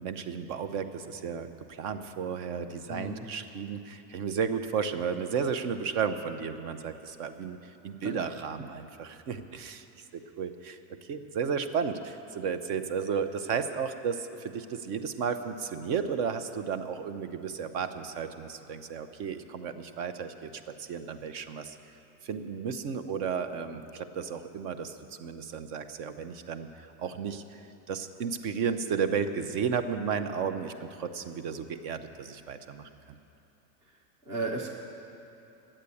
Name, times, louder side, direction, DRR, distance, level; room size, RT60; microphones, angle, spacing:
voice 1, 0.0-7.6 7.8-9.8 10.1-20.5 20.8-21.8 22.2-26.7 27.0-27.6 27.9-32.9, right 6 dB, 45° right, 10 dB, 0.7 m, -33 dB
voice 2, 2.9-3.3 8.0-8.2 34.3-34.7, right 2 dB, 10° right, -2 dB, 0.3 m, -34 dB
12.0 x 8.7 x 8.3 m, 2.9 s
supercardioid pair, 165°, 46 cm